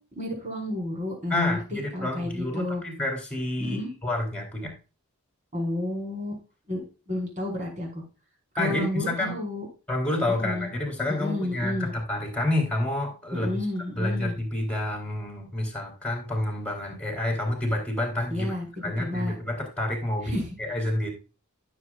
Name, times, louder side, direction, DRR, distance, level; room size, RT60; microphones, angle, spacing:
voice 1, 0.1-2.8 3.6-3.9 5.5-6.4 6.7-8.0 8.5-9.7 10.3-10.7 11.2-11.9 13.3-14.3 18.3-19.3 20.2-20.5, left 1 dB, 35° right, 0 dB, 5.0 m, -31 dB
voice 2, 1.3-4.7 8.6-9.4 9.9-13.7 14.0-18.5 18.8-20.3 20.6-21.1, left 1 dB, 5° left, 1 dB, 3.9 m, -29 dB
16.0 x 7.6 x 2.5 m, 0.33 s
head